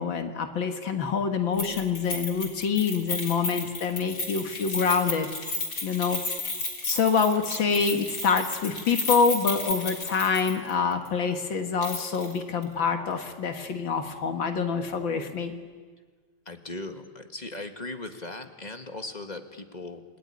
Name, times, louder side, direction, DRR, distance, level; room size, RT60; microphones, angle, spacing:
voice 1, 0.0-5.3 5.8-6.2 6.8-15.5, left 5 dB, 75° left, 6 dB, 2.5 m, -26 dB
Keys jangling, 1.6-10.7 11.0-11.1 11.8-12.3 12.6-12.7, left 2 dB, 60° left, 4.1 m, -33 dB
voice 2, 7.5-7.8 16.5-20.0, left 2 dB, 20° left, 6 dB, 1.8 m, -38 dB
29.5 x 20.5 x 9.9 m, 1.5 s
omnidirectional pair, 2.1 m